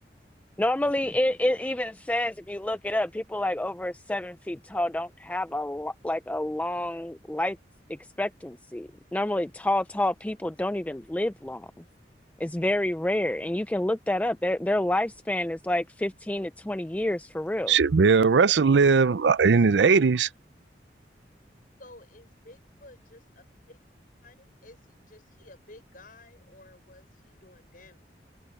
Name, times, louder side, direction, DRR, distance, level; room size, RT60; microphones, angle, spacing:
voice 1, 0.6-7.6 8.2-11.7 12.4-17.7, left 1 dB, 10° left, 0.4 m, -28 dB
voice 2, 17.7-20.3, right 5 dB, 85° right, 0.5 m, -19 dB
voice 3, 21.8-23.8 24.2-28.2, left 2 dB, 50° left, 6.2 m, -53 dB
head